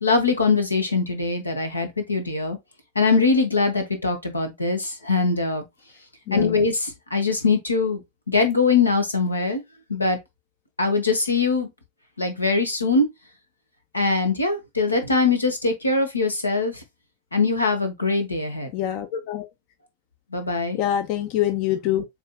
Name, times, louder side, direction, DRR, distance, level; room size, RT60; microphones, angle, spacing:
voice 1, 0.0-2.6 2.9-5.6 6.3-8.0 8.3-9.6 9.9-10.2 10.8-11.7 12.2-13.1 13.9-16.8 17.3-18.7 20.3-20.8, left 4 dB, 80° left, 1.1 m, -22 dB
voice 2, 18.7-19.5 20.7-22.0, left 11 dB, 45° left, 0.6 m, -25 dB
7.3 x 2.7 x 2.2 m
figure-of-eight pair, 90°, 0 cm